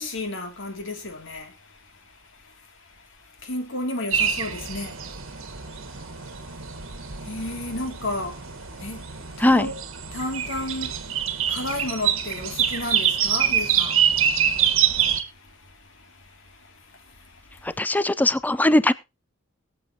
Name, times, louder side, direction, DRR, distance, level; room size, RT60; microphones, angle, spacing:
voice 1, 0.0-9.8 10.1-17.8, left 2 dB, 60° left, 2.5 m, -35 dB
sound 1, 4.1-15.2, right 8 dB, 70° right, 1.4 m, -25 dB
voice 2, 17.6-18.9, left 1 dB, 10° left, 0.5 m, -20 dB
22.0 x 7.7 x 2.8 m
head